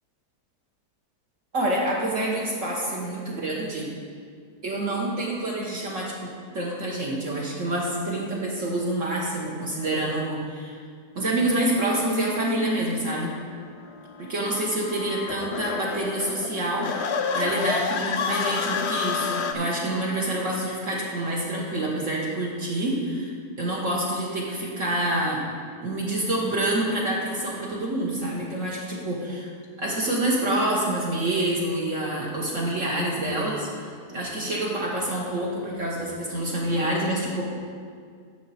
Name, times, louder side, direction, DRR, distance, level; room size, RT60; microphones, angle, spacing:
voice 1, 1.5-3.9 4.6-10.8 11.1-13.3 14.2-23.3 23.6-25.4 25.8-29.5 29.8-37.4, right 1 dB, 50° right, -4 dB, 1.4 m, -27 dB
sound 1, 13.1-19.5, left 6 dB, 70° left, 0.6 m, -30 dB
10.0 x 6.6 x 4.2 m, 2.1 s
omnidirectional pair, 1.8 m